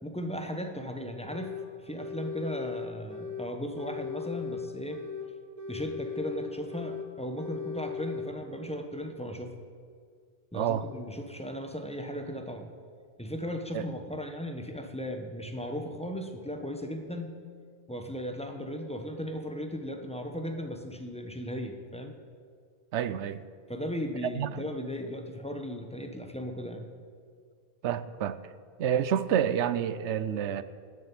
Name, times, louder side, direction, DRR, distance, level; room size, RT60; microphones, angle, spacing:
voice 1, 0.0-1.6 1.8-5.0 5.7-9.5 10.5-12.7 13.2-17.3 17.9-22.2 23.7-26.9, equal, 5° left, 4 dB, 1.0 m, -36 dB
sound 1, 1.3-1.7 2.0-3.5 3.8-5.3 5.6-7.1 7.4-8.3, left 6 dB, 35° right, 1.2 m, -38 dB
voice 2, 10.5-10.9 13.7-13.8 22.9-23.4 24.4-24.6 27.8-28.4 28.8-30.6, right 9 dB, 80° right, 14 dB, 0.9 m, -28 dB
13.5 x 7.5 x 8.8 m, 2.1 s
omnidirectional pair, 1.2 m